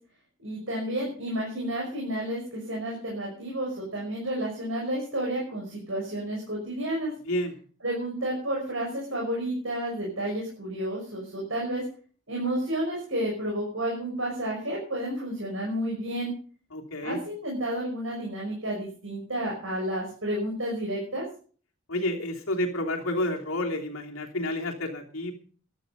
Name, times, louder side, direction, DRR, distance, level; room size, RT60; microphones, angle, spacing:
voice 1, 0.4-7.1 7.8-11.8 12.3-16.3 17.0-21.2, right 1 dB, 70° right, -2 dB, 6.0 m, -31 dB
voice 2, 16.7-17.2 21.9-25.3, left 1 dB, 80° left, 1 dB, 3.0 m, -30 dB
14.0 x 12.5 x 5.2 m, 0.43 s
head